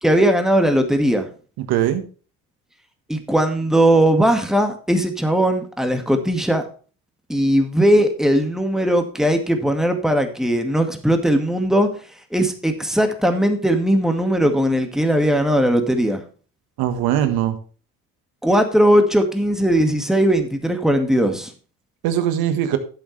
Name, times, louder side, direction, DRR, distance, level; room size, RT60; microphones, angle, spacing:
voice 1, 0.0-1.3 3.1-6.6 7.3-11.9 12.3-16.2 18.4-21.5, equal, ahead, 5 dB, 1.9 m, -18 dB
voice 2, 1.6-2.0 16.8-17.6 22.0-22.8, right 11 dB, 75° right, 10 dB, 1.5 m, -20 dB
11.5 x 8.0 x 3.3 m, 0.39 s
supercardioid pair, 75°, 37 cm